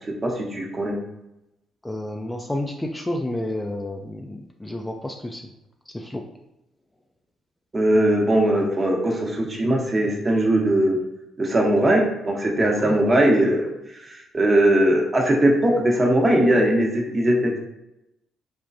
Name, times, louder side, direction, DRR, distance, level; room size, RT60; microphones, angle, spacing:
voice 1, 0.2-0.9 7.7-11.0 11.4-13.7 14.3-17.6, right 1 dB, 35° right, 0 dB, 0.9 m, -20 dB
voice 2, 1.8-5.4 5.9-6.2 12.6-13.0, left 1 dB, 15° left, 2 dB, 0.3 m, -30 dB
3.6 x 2.2 x 2.5 m, 0.90 s
hypercardioid pair, 45°, 0 cm